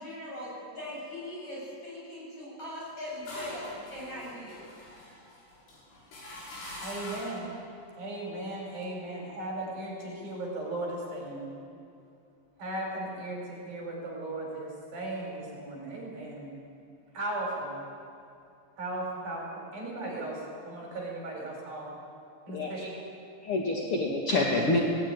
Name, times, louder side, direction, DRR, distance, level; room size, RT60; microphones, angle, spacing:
voice 1, 0.0-4.6, left 1 dB, 30° left, -5 dB, 8.9 m, -40 dB
sound 1, 2.8-7.5, left 1 dB, 85° left, 8.4 m, -44 dB
voice 2, 6.8-7.5 8.0-11.5 12.6-16.5 17.1-17.8 18.8-19.5 19.7-21.9 22.5-22.8, right 2 dB, 50° right, -2 dB, 6.7 m, -36 dB
voice 3, 22.5-22.9 23.4-24.8, left 2 dB, 65° left, -1 dB, 1.4 m, -27 dB
18.5 x 18.5 x 9.5 m, 2.6 s
omnidirectional pair, 5.4 m